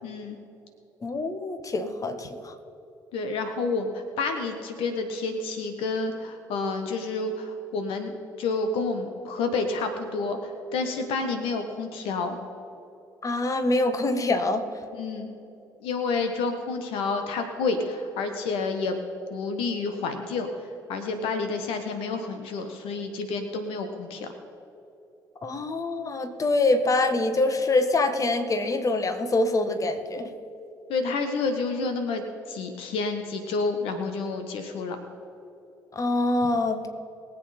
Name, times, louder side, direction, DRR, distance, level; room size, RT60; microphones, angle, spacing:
voice 1, 0.0-0.4 3.1-12.4 15.0-15.3 15.8-19.0 19.3-20.5 20.9-24.3 30.9-35.0, left 3 dB, 65° left, 6 dB, 1.4 m, -29 dB
voice 2, 1.0-2.5 13.2-14.6 25.4-30.3 35.9-36.9, left 2 dB, 35° left, 8 dB, 1.5 m, -25 dB
22.5 x 8.2 x 4.3 m, 2.9 s
figure-of-eight pair, 50°, 10 cm